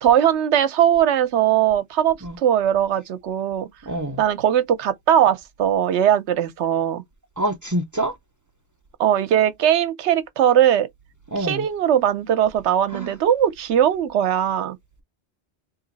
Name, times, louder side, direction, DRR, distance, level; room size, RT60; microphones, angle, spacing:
voice 1, 0.0-3.7 4.2-7.0 9.0-10.9 11.4-14.8, right 10 dB, 75° right, 0.9 m, -19 dB
voice 2, 3.9-4.2 7.4-8.2 11.3-11.7 12.9-13.1, right 1 dB, 30° right, 0.4 m, -26 dB
2.9 x 2.8 x 3.9 m
omnidirectional pair, 1.2 m